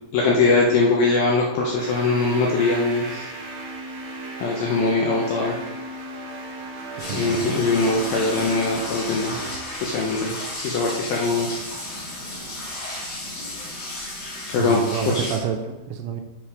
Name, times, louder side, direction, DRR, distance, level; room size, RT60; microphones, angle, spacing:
voice 1, 0.1-3.3 4.4-5.6 7.1-9.4 9.8-10.3 10.6-11.5 14.5-14.8 15.1-15.2, left 3 dB, 75° left, -1 dB, 2.2 m, -21 dB
sound 1, 1.8-9.6, right 1 dB, 55° right, 1.6 m, -36 dB
sound 2, 7.0-15.4, left 1 dB, 40° left, 2.9 m, -33 dB
voice 2, 7.0-7.5 14.6-16.2, right 8 dB, 85° right, 5 dB, 2.7 m, -29 dB
7.4 x 5.9 x 4.9 m, 1.1 s
omnidirectional pair, 5.2 m